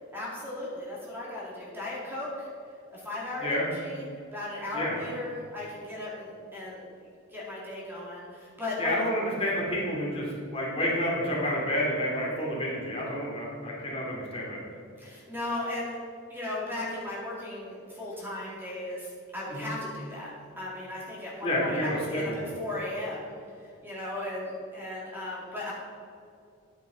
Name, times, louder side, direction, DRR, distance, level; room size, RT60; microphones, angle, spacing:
voice 1, 0.1-2.5 2.9-4.1 4.3-6.9 7.3-8.9 15.0-16.0 16.3-23.3 23.6-25.7, left 2 dB, 10° right, -6 dB, 2.2 m, -36 dB
voice 2, 8.8-14.6 19.5-19.7 21.4-22.4, equal, 25° left, -4 dB, 2.5 m, -29 dB
10.5 x 9.5 x 3.9 m, 2.5 s
head